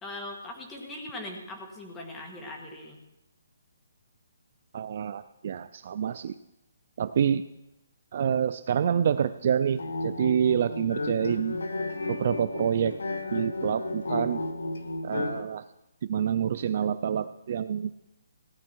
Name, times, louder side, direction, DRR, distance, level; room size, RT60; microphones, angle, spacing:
voice 1, 0.0-3.0, left 1 dB, 10° left, 1 dB, 1.5 m, -40 dB
voice 2, 4.7-6.4 7.0-7.4 8.1-11.6 12.1-13.0 13.3-14.4 15.0-15.6 16.0-17.9, right 8 dB, 40° right, 13 dB, 0.3 m, -27 dB
sound 1, 9.7-15.4, left 2 dB, 85° left, 1.3 m, -33 dB
16.5 x 9.5 x 4.6 m, 0.90 s
hypercardioid pair, 175°, 0 cm